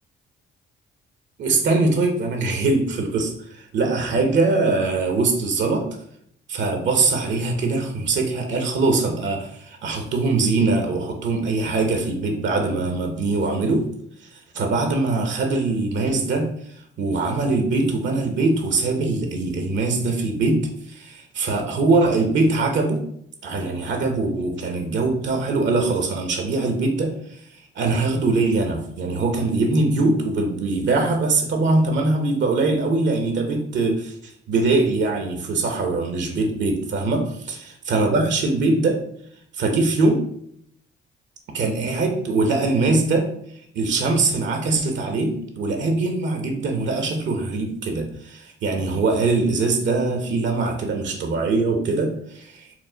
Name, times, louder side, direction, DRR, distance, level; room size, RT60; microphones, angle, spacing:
voice 1, 1.4-5.8 6.5-13.8 14.2-16.5 17.0-23.0 23.4-27.4 27.7-39.0 39.5-40.2 41.5-43.3 43.7-52.7, right 3 dB, 65° right, 3 dB, 0.8 m, -22 dB
4.5 x 2.1 x 3.8 m, 0.69 s
cardioid pair, 90°, 20 cm